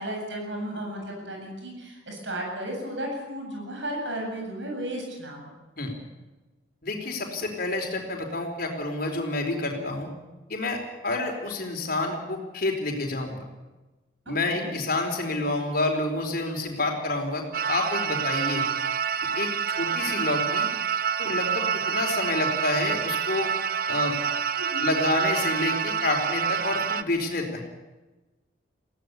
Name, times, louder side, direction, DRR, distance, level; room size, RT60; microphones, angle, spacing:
voice 1, 0.0-5.5 14.3-14.7 24.5-24.9, right 1 dB, 65° right, 1 dB, 7.9 m, -34 dB
voice 2, 6.8-10.1 10.5-13.5 14.3-18.6 19.4-19.5 19.8-20.7 21.2-23.5 23.9-24.2 24.8-27.6, left 2 dB, 50° left, 2 dB, 4.3 m, -28 dB
sound 1, 17.5-27.0, right 7 dB, 50° right, 0.9 m, -27 dB
21.0 x 17.0 x 8.5 m, 1.1 s
head